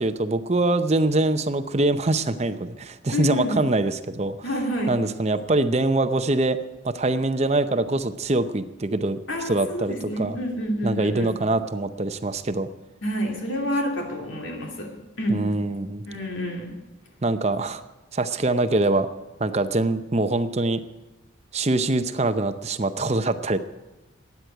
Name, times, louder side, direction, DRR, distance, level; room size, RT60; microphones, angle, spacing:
voice 1, 0.0-4.4 4.9-6.6 6.8-9.2 9.4-10.4 10.8-12.7 15.3-16.0 17.2-17.8 18.1-19.1 19.4-20.8 21.5-23.6, right 2 dB, 30° right, 10 dB, 0.7 m, -24 dB
voice 2, 3.1-3.7 4.4-5.0 9.3-11.3 13.0-14.9 15.2-15.5 16.0-16.7, equal, 70° left, 1 dB, 2.6 m, -28 dB
13.0 x 9.5 x 9.1 m, 1.1 s
head